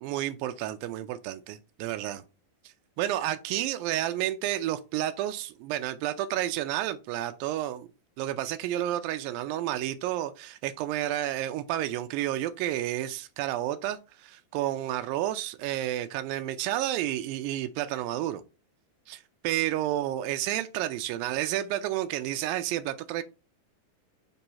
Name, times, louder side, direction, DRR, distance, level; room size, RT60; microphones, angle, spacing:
voice 1, 0.0-2.2 3.0-7.9 8.2-18.4 19.1-23.2, right 13 dB, 90° right, 2.3 m, -31 dB
5.7 x 3.0 x 5.5 m
omnidirectional pair, 4.0 m